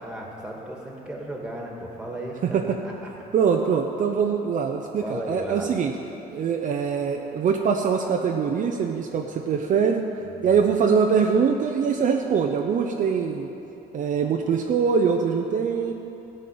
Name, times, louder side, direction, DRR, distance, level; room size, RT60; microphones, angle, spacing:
voice 1, 0.0-2.4 2.8-3.3 5.0-5.7 10.2-10.7, right 1 dB, 5° right, -1 dB, 2.2 m, -35 dB
voice 2, 3.3-5.9 6.3-10.0 10.4-13.5 13.9-15.9, right 6 dB, 50° right, 2 dB, 0.7 m, -23 dB
14.0 x 5.3 x 8.5 m, 2.9 s
cardioid pair, 110°, 17 cm